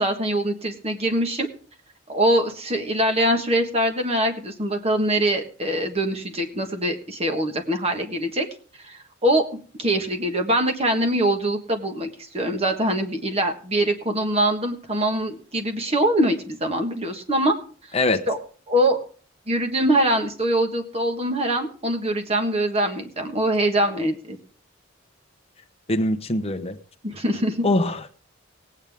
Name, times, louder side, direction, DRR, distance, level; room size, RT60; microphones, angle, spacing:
voice 1, 0.0-1.5 2.1-8.5 8.8-9.4 9.8-17.5 18.3-18.4 18.7-19.0 19.5-24.4 27.0-27.6, right 1 dB, 30° right, 5 dB, 1.5 m, -23 dB
voice 2, 17.9-18.3 25.9-26.8 27.6-28.1, left 2 dB, 30° left, 7 dB, 0.9 m, -22 dB
18.5 x 8.9 x 3.6 m, 0.42 s
head